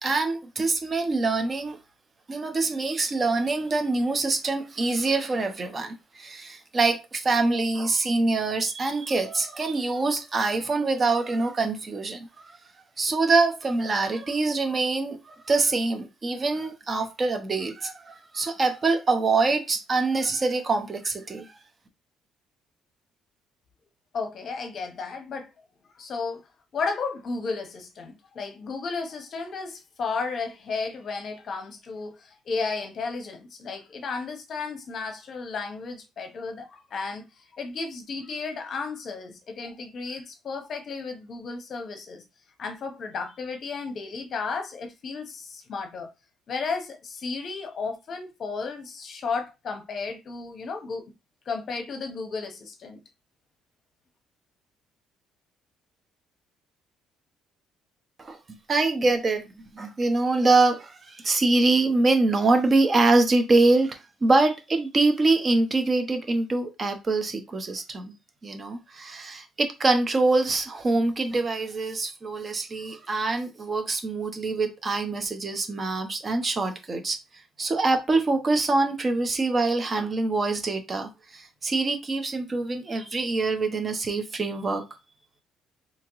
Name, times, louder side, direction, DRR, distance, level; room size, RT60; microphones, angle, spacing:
voice 1, 0.0-1.8 2.3-12.6 13.0-21.5 58.2-58.4 58.7-59.5 59.7-68.1 68.4-77.2 77.6-84.8, right 3 dB, 25° right, 0.7 m, -24 dB
voice 2, 24.1-25.5 26.0-26.4 26.7-37.3 37.6-42.2 42.6-46.1 46.5-51.1 51.5-53.0, left 4 dB, 45° left, 0.8 m, -33 dB
3.5 x 2.9 x 3.0 m
cardioid pair, 140°, 0 cm